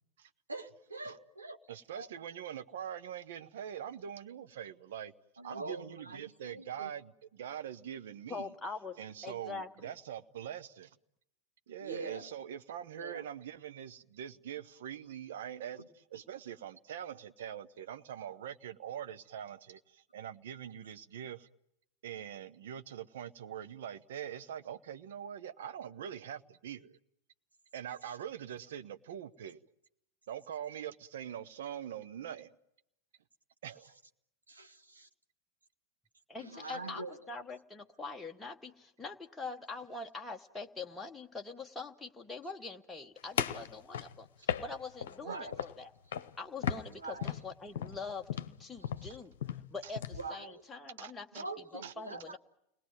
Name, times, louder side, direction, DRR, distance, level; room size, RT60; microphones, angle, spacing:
voice 1, 0.5-1.6 1.9-2.1 5.4-6.9 11.8-12.3 12.9-13.2 15.8-15.9 28.0-28.2 34.5-35.1 36.4-37.2 45.2-45.6 46.9-47.3 48.8-49.0 50.1-50.6 51.3-52.4, right 3 dB, 80° right, 1.3 m, -44 dB
voice 2, 1.7-5.1 5.4-8.5 9.0-11.0 11.7-15.8 16.1-21.5 22.0-27.0 27.7-29.6 30.3-32.5 33.6-34.0 45.2-45.4 49.8-49.9 51.0-51.4 51.8-51.9, right 9 dB, 60° right, 1.0 m, -43 dB
voice 3, 8.3-9.0 9.2-9.9 36.3-45.9 46.4-48.3 48.6-49.3 49.7-51.4 51.7-52.4, left 3 dB, 10° left, 1.0 m, -44 dB
sound 1, 43.4-45.2 45.5-45.8 46.1-46.4 46.6-50.2, left 8 dB, 60° left, 0.9 m, -36 dB
30.0 x 20.0 x 9.2 m
figure-of-eight pair, 90°, 0 cm